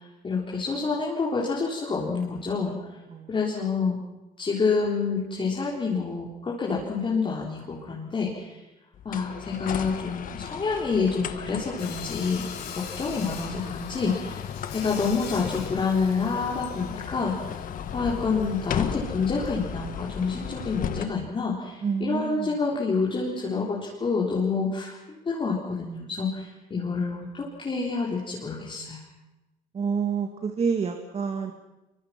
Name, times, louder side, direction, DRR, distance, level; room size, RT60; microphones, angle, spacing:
voice 1, 0.2-2.7 3.3-4.0 4.4-8.6 9.0-12.4 12.8-14.4 14.7-17.4 17.9-29.0, left 4 dB, 30° left, -4 dB, 4.2 m, -28 dB
sound 1, 8.9-21.1, left 8 dB, 55° left, 1.5 m, -35 dB
Sawing, 11.8-20.9, left 8 dB, 80° left, 5.0 m, -44 dB
voice 2, 21.8-22.6 26.8-27.0 29.7-31.5, right 6 dB, 40° right, 5 dB, 2.0 m, -28 dB
24.5 x 24.0 x 5.9 m, 1.0 s
cardioid pair, 110°, 17 cm